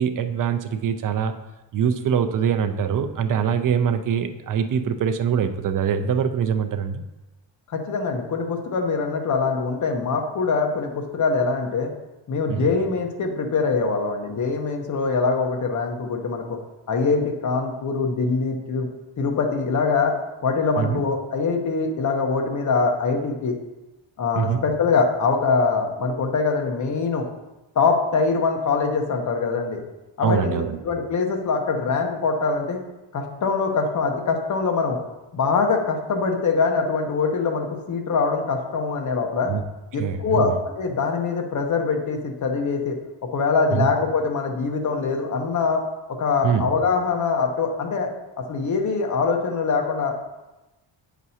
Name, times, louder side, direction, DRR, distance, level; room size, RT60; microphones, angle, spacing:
voice 1, 0.0-1.3 1.7-7.0 12.5-12.7 20.8-21.0 24.3-24.6 30.2-30.8 39.5-39.6 40.0-40.5 43.7-43.9 46.4-46.7, right 7 dB, 45° right, 8 dB, 0.5 m, -23 dB
voice 2, 7.7-11.9 12.3-16.6 16.9-18.9 19.2-23.5 24.2-27.3 27.7-29.8 30.2-30.6 30.8-32.8 33.1-35.0 35.3-39.5 39.9-40.5 40.8-42.9 43.3-45.8 46.2-48.1 48.5-50.2, left 4 dB, 40° left, 3 dB, 0.9 m, -23 dB
8.5 x 6.1 x 2.8 m, 1.0 s
wide cardioid pair, 165°, 44 cm